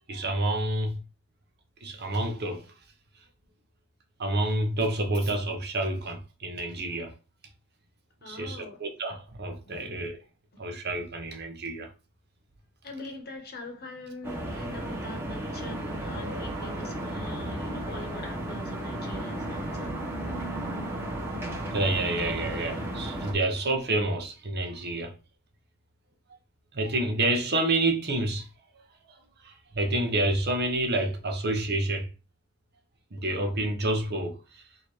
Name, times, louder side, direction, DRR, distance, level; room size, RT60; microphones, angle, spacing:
voice 1, 0.1-1.0 1.8-2.7 4.2-7.1 8.3-10.2 10.6-11.9 21.7-25.1 26.7-28.5 29.4-32.1 33.1-34.6, right 2 dB, 45° right, 0.9 m, -28 dB
voice 2, 8.2-8.8 9.6-10.0 12.8-20.0, left 2 dB, 45° left, 1.2 m, -42 dB
sound 1, 14.2-23.3, right 1 dB, 10° right, 1.2 m, -34 dB
3.8 x 2.8 x 4.7 m
head